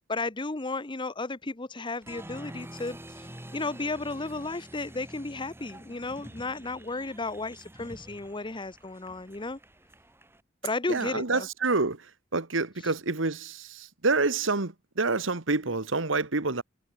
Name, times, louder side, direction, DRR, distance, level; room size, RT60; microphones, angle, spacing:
voice 1, 0.1-3.0 3.5-9.6 10.6-11.5, left 3 dB, 25° left, 1.0 m, -33 dB
Applause, 2.0-10.4, right 1 dB, 10° right, 5.5 m, -47 dB
voice 2, 10.9-16.6, right 3 dB, 80° right, 1.7 m, -28 dB
head